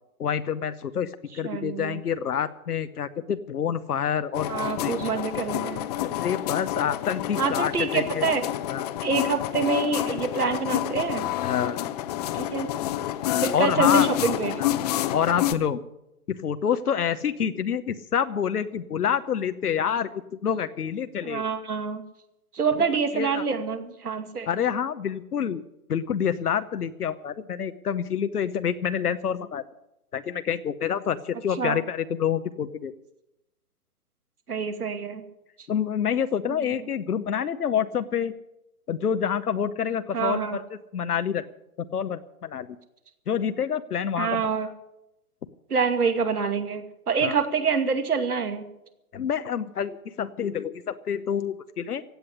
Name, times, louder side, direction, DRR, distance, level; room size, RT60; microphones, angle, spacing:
voice 1, 0.2-4.5 4.8-4.9 5.9-8.3 8.7-8.9 11.4-11.8 13.5-14.1 14.6-14.7 15.1-15.8 16.3-21.4 23.1-23.4 24.5-25.6 25.9-29.6 30.1-32.9 35.7-38.3 38.9-40.6 40.9-41.4 41.8-42.7 43.3-44.7 47.2-47.4 49.1-52.0, left 8 dB, 85° left, 9 dB, 1.0 m, -27 dB
voice 2, 1.4-2.0 4.5-5.9 7.4-8.5 9.0-11.3 12.3-12.7 13.4-14.6 21.2-22.0 22.5-24.5 31.6-31.8 34.5-35.2 36.5-36.7 40.1-40.6 44.2-44.7 45.7-48.6, right 5 dB, 85° right, 6 dB, 2.5 m, -26 dB
sound 1, 4.3-15.5, left 13 dB, 25° left, 0.7 m, -28 dB
16.0 x 8.1 x 9.9 m, 0.90 s
hypercardioid pair, 135°, 44 cm